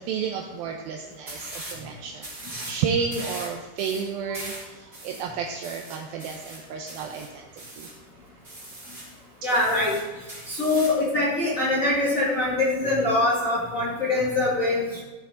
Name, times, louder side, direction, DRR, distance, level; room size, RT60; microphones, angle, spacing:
voice 1, 0.0-2.3 2.6-7.5 7.8-7.9, right 6 dB, 85° right, 2 dB, 2.1 m, -31 dB
sound 1, 1.3-1.8 2.2-2.8 3.1-8.0 8.4-9.1 9.5-11.0, right 1 dB, 15° right, 3.5 m, -40 dB
voice 2, 9.4-9.9 10.5-15.0, left 2 dB, 40° left, -7 dB, 1.1 m, -23 dB
15.0 x 7.0 x 3.8 m, 1.2 s
omnidirectional pair, 5.0 m